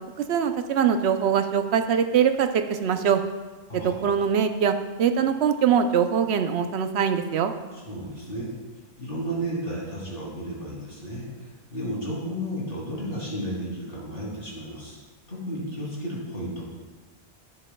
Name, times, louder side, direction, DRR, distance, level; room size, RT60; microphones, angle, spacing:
voice 1, 0.3-3.2 3.7-7.5, right 7 dB, 75° right, 8 dB, 0.9 m, -23 dB
voice 2, 7.7-8.5 9.0-15.0 15.3-16.6, equal, 55° left, -5 dB, 3.1 m, -33 dB
11.5 x 9.6 x 2.2 m, 1.3 s
omnidirectional pair, 1.1 m